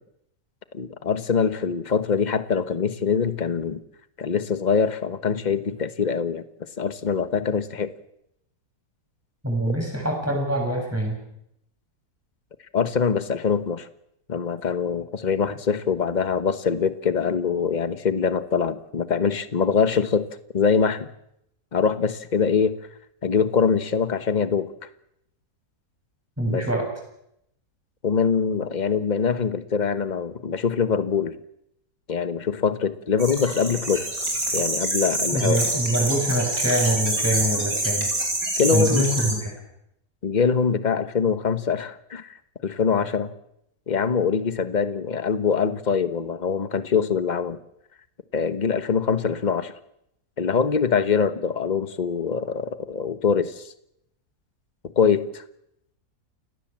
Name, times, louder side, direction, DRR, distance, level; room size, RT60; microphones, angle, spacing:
voice 1, 0.7-3.8 4.2-6.4 6.8-7.9 12.7-13.9 14.3-20.3 20.5-21.1 21.7-22.8 23.2-24.7 26.5-26.7 28.0-31.3 32.1-34.0 34.5-35.6 38.6-39.1 40.2-42.4 42.6-43.3 43.9-47.6 48.3-49.7 50.4-53.7 55.0-55.4, left 6 dB, 30° left, 12 dB, 1.2 m, -23 dB
voice 2, 9.4-11.2 26.4-26.9 35.3-38.1 38.7-39.5, right 1 dB, 10° right, 1 dB, 8.0 m, -24 dB
sound 1, 33.2-39.3, right 1 dB, 65° right, 5.9 m, -26 dB
29.5 x 18.0 x 7.5 m, 0.79 s
omnidirectional pair, 1.6 m